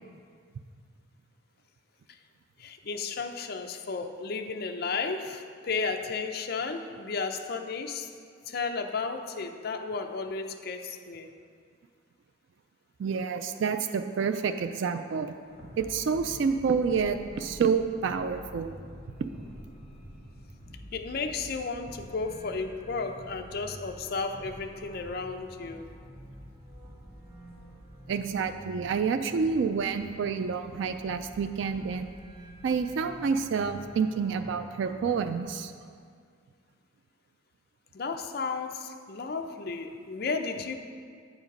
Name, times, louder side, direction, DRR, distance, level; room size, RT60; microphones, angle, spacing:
voice 1, 2.6-8.1 8.5-11.3 20.9-25.9 37.9-40.7, left 4 dB, 50° left, 6 dB, 0.5 m, -33 dB
voice 2, 13.0-15.3 15.8-18.7 28.1-32.1 32.6-35.7, right 5 dB, 65° right, 8 dB, 0.3 m, -28 dB
sound 1, 15.4-35.4, equal, ahead, 1.9 m, -48 dB
8.1 x 5.0 x 5.2 m, 2.1 s
head